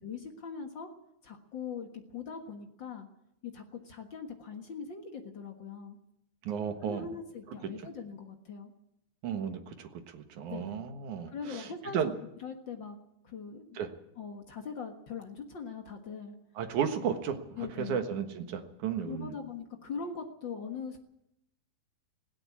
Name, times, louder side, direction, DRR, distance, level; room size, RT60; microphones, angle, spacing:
voice 1, 0.0-0.9 1.2-3.1 3.4-6.0 6.8-8.7 10.5-10.8 11.3-13.0 13.2-13.8 14.1-16.3 17.5-18.0 19.0-21.0, left 5 dB, 65° left, 4 dB, 1.1 m, -41 dB
voice 2, 6.5-7.0 9.2-11.3 11.9-12.1 13.8-13.9 16.6-17.4 17.8-19.3, right 7 dB, 60° right, 7 dB, 2.4 m, -33 dB
18.0 x 17.0 x 8.5 m, 0.80 s
omnidirectional pair, 4.6 m